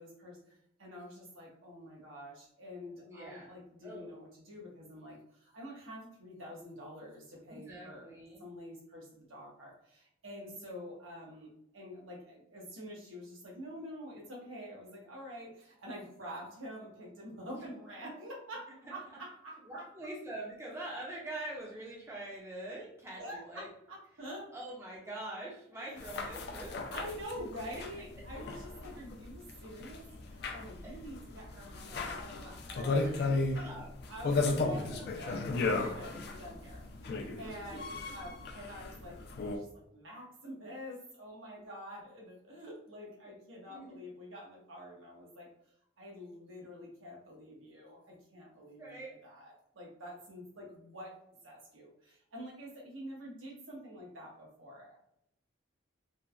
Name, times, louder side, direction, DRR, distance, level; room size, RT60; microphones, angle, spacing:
voice 1, 0.0-8.1 8.4-19.9 23.2-23.6 23.9-24.5 25.7-26.0 26.9-33.7 34.1-35.4 35.7-37.1 37.4-45.5 46.0-51.1 51.4-55.0, equal, 85° right, -3 dB, 1.0 m, -47 dB
voice 2, 3.1-3.5 3.8-4.1 7.5-8.4 17.5-17.6 18.8-18.9 19.6-23.7 24.5-27.0 27.7-27.8 30.8-31.0 32.8-33.9 34.7-35.9 37.1-37.3 43.2-43.3 43.7-44.0 48.7-49.1, right 1 dB, 15° right, -3 dB, 0.5 m, -45 dB
sound 1, 26.0-39.6, left 3 dB, 55° left, 0.3 m, -35 dB
3.2 x 2.1 x 2.4 m, 0.76 s
head